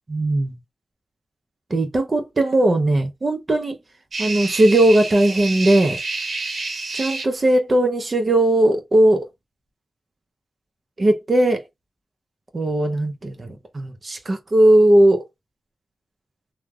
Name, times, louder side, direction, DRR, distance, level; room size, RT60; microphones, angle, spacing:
voice 1, 0.1-0.6 1.7-3.8 4.2-6.0 6.9-9.3 11.0-11.6 12.5-15.2, right 1 dB, 45° right, 0.7 m, -18 dB
sound 1, 4.1-7.2, right 3 dB, 70° right, 1.0 m, -28 dB
3.2 x 2.1 x 2.3 m
cardioid pair, 55°, 0 cm